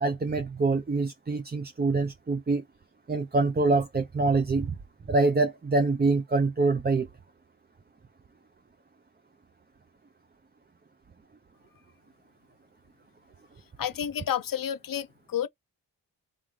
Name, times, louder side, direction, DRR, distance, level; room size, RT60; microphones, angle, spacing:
voice 1, 0.0-2.6 3.1-4.8 5.1-7.1, right 3 dB, 25° right, 0.6 m, -25 dB
voice 2, 13.8-15.5, left 9 dB, 50° left, 0.7 m, -30 dB
3.6 x 3.5 x 3.2 m
cardioid pair, 55°, 42 cm